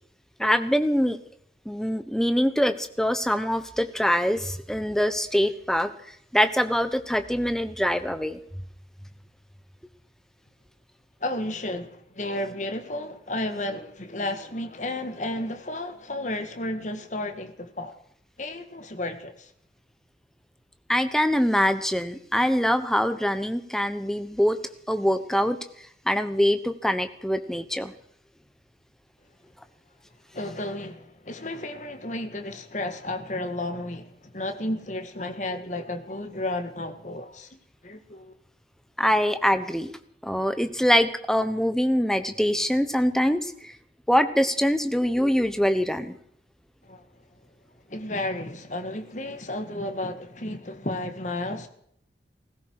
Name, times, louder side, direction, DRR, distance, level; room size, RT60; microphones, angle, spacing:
voice 1, 0.4-1.2 1.6-5.9 6.3-8.4 20.9-24.6 24.9-25.6 26.1-27.9 39.0-39.9 40.2-43.7 44.1-46.1, equal, 5° left, 1.1 m, -24 dB
voice 2, 11.2-17.9 18.4-19.5 30.3-37.5 37.8-38.3 46.9-47.0 47.9-51.7, left 1 dB, 45° left, 1.9 m, -32 dB
18.0 x 16.0 x 4.8 m
head